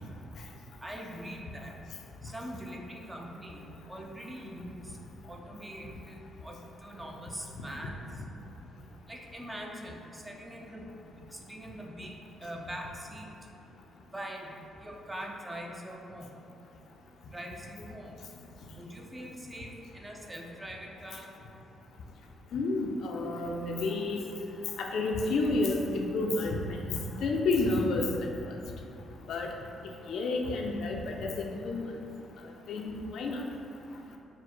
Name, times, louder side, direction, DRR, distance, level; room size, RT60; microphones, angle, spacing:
voice 1, 0.8-1.8 2.2-5.0 5.3-8.0 9.1-12.1 12.4-13.3 14.1-16.3 17.3-18.2 18.7-21.3, equal, 15° right, 1 dB, 0.5 m, -43 dB
voice 2, 22.5-24.2 24.8-28.1 29.3-29.5 30.1-31.9 32.7-33.4, left 2 dB, 70° left, 1 dB, 0.4 m, -30 dB
4.4 x 2.0 x 4.3 m, 2.7 s
cardioid pair, 90°, 0 cm